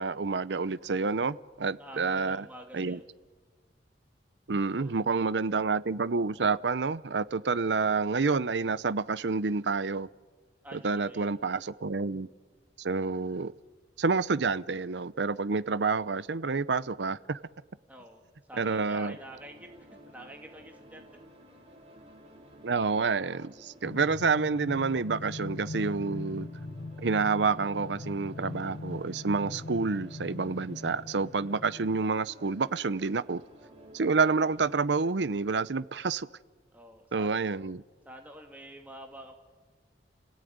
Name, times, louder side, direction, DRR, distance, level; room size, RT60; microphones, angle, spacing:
voice 1, 0.0-2.5 2.7-3.0 4.5-10.1 10.7-12.3 12.8-13.5 14.0-17.4 18.6-19.2 22.6-26.5 27.0-33.4 33.9-36.3 37.1-37.8, right 4 dB, 80° right, 0.7 m, -28 dB
voice 2, 1.8-3.0 4.7-5.0 10.6-11.4 17.9-18.2 18.5-21.1 36.7-37.3 38.1-39.3, right 1 dB, 10° right, 2.4 m, -48 dB
sound 1, 19.0-34.8, right 1 dB, 35° right, 5.2 m, -53 dB
sound 2, 23.8-32.0, left 2 dB, 50° left, 0.8 m, -41 dB
30.0 x 18.0 x 9.5 m
head